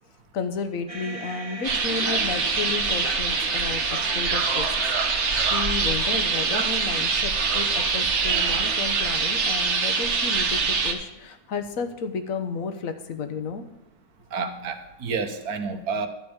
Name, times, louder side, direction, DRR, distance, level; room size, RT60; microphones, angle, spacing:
voice 1, 0.3-13.6, left 5 dB, 65° left, 9 dB, 1.3 m, -32 dB
sound 1, 0.9-11.1, right 2 dB, 25° right, 1.4 m, -43 dB
sound 2, 1.6-10.9, right 4 dB, 50° right, 1.3 m, -24 dB
voice 2, 14.3-16.1, right 5 dB, 80° right, 7 dB, 1.6 m, -29 dB
12.0 x 5.1 x 8.8 m, 0.94 s
omnidirectional pair, 1.6 m